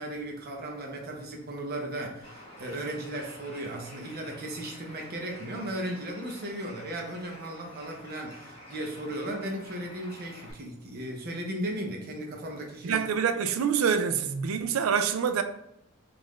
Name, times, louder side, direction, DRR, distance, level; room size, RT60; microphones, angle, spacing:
voice 1, 0.0-13.0, right 1 dB, 45° right, 0.7 m, -36 dB
Bird, 2.2-10.5, left 1 dB, 30° left, 1.0 m, -49 dB
voice 2, 12.8-15.4, right 7 dB, 80° right, 0.3 m, -26 dB
3.7 x 2.5 x 3.1 m
head